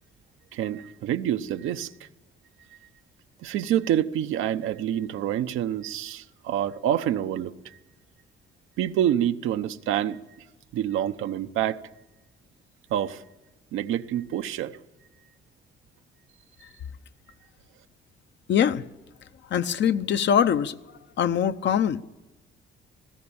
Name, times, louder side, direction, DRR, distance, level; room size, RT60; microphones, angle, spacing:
voice 1, 0.5-2.1 3.4-7.8 8.8-10.2 10.7-11.8 12.9-13.2 13.7-14.8, right 11 dB, 90° right, 0.9 m, -27 dB
voice 2, 18.5-18.8 19.5-20.8 21.2-22.0, left 8 dB, 65° left, 0.9 m, -22 dB
18.5 x 16.0 x 8.7 m
cardioid pair, 90°, 20 cm